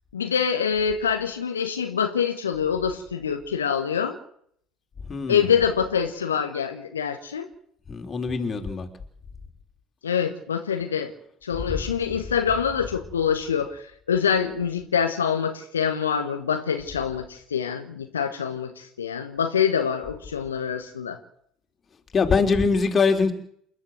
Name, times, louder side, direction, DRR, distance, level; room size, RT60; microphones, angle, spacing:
voice 1, 0.1-4.2 5.3-7.5 10.0-11.1 11.4-21.2, left 7 dB, 85° left, 6 dB, 1.4 m, -25 dB
voice 2, 5.1-5.5 7.9-8.9 11.7-11.8 22.1-23.3, left 4 dB, 30° left, 5 dB, 3.7 m, -23 dB
28.5 x 11.5 x 7.9 m, 0.66 s
figure-of-eight pair, 65°, 0 cm